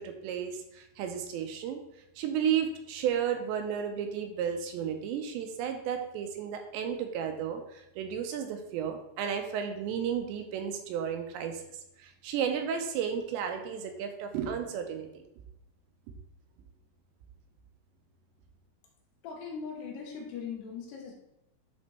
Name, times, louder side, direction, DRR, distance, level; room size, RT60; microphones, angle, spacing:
voice 1, 0.0-1.8 2.2-11.6 12.0-15.2, right 8 dB, 85° right, 5 dB, 2.8 m, -33 dB
voice 2, 19.2-21.1, left 6 dB, 70° left, 0 dB, 3.0 m, -40 dB
11.5 x 4.2 x 3.2 m, 0.84 s
omnidirectional pair, 5.3 m